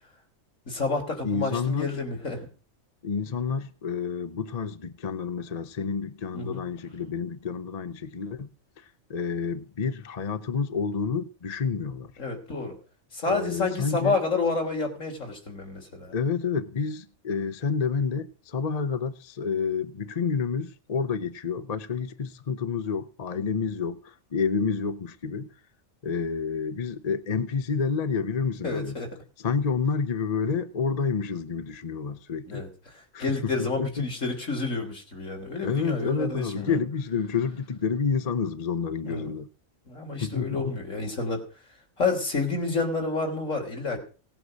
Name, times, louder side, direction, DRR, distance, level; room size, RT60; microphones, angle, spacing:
voice 1, 0.7-2.5 6.3-6.6 12.2-12.8 13.1-16.1 23.3-23.4 28.6-29.2 32.5-36.8 39.0-39.3 39.9-41.4 42.0-44.0, left 3 dB, 70° left, 3.8 m, -29 dB
voice 2, 1.2-1.9 3.0-8.5 8.8-12.1 13.3-14.2 16.1-25.5 26.0-29.0 29.4-32.6 33.1-34.1 35.6-39.5 40.2-40.8, left 5 dB, 35° left, 0.8 m, -29 dB
17.5 x 9.0 x 6.4 m
omnidirectional pair, 1.4 m